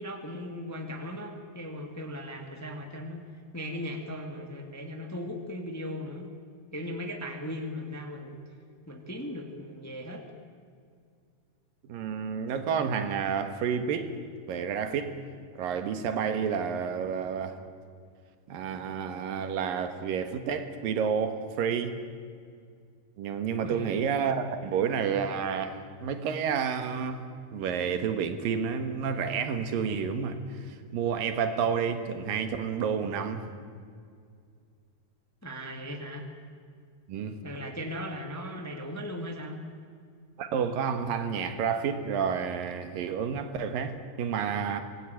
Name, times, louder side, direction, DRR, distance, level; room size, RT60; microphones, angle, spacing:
voice 1, 0.0-3.2 3.5-6.3 6.7-8.4 8.9-10.3 23.6-24.0 35.4-36.3 37.4-39.6, left 1 dB, 5° left, 1.6 m, -38 dB
voice 2, 11.9-14.1 14.5-15.2 15.5-17.6 18.5-22.0 23.2-27.2 27.5-30.4 30.7-33.5 37.1-37.4 40.4-44.8, right 7 dB, 80° right, 3.2 m, -30 dB
25.5 x 19.5 x 9.2 m
omnidirectional pair, 4.0 m